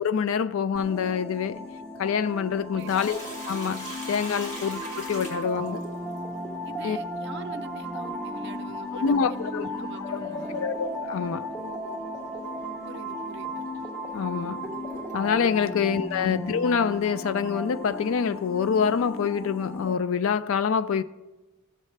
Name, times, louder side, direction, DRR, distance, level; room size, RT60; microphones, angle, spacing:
voice 1, 0.0-1.7 2.0-3.2 3.5-5.8 6.8-7.0 9.0-9.7 10.1-11.5 14.1-14.7 15.1-21.0, left 6 dB, 60° left, 0.3 m, -26 dB
sound 1, 0.7-19.9, equal, 10° left, 1.0 m, -35 dB
voice 2, 2.7-3.1 6.6-10.7 12.8-13.6 15.6-15.8 16.2-16.3, right 3 dB, 50° right, 0.6 m, -44 dB
Sink (filling or washing), 2.8-6.2 8.6-8.7 10.5-10.8 11.3-11.4 12.1-12.3 13.0-13.1 13.7-15.6, equal, 30° left, 2.3 m, -41 dB
15.0 x 7.3 x 3.2 m
head